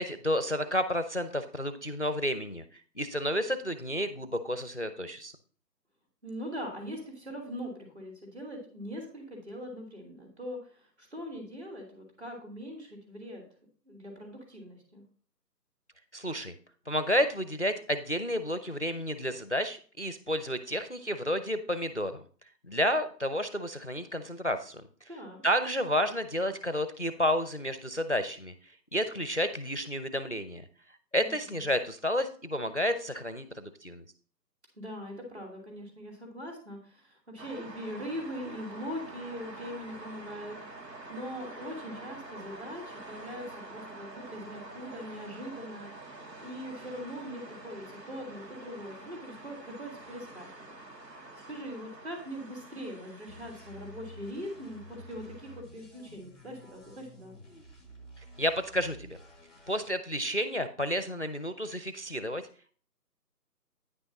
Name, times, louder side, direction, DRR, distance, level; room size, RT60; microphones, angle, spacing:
voice 1, 0.0-2.6 3.0-5.3 16.1-16.5 16.9-22.2 22.6-24.8 25.4-28.5 28.9-30.6 31.1-34.0 58.4-59.2 59.7-62.4, equal, 45° left, 11 dB, 0.5 m, -31 dB
voice 2, 6.2-13.4 13.8-15.0 25.1-25.4 31.2-31.3 34.7-40.6 41.1-45.9 46.4-50.7 51.1-57.3, equal, 40° right, 0 dB, 3.2 m, -41 dB
sound 1, 37.4-55.6, right 2 dB, 75° right, 1.9 m, -47 dB
sound 2, 53.3-59.9, equal, ahead, 0.7 m, -51 dB
9.6 x 5.9 x 4.1 m, 0.44 s
figure-of-eight pair, 175°, 50 cm